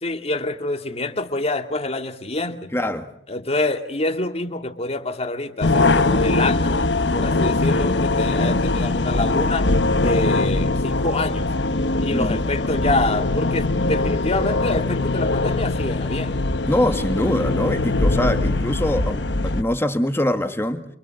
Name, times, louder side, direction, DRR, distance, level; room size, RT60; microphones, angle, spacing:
voice 1, 0.0-2.7 3.3-6.7 7.1-9.7 10.0-11.5 12.0-16.5, left 2 dB, 35° left, 2.4 m, -26 dB
voice 2, 2.7-3.1 12.1-12.4 16.7-20.9, left 1 dB, 15° left, 1.9 m, -23 dB
sound 1, 5.6-19.6, left 2 dB, 80° left, 1.3 m, -21 dB
29.0 x 25.0 x 7.9 m
head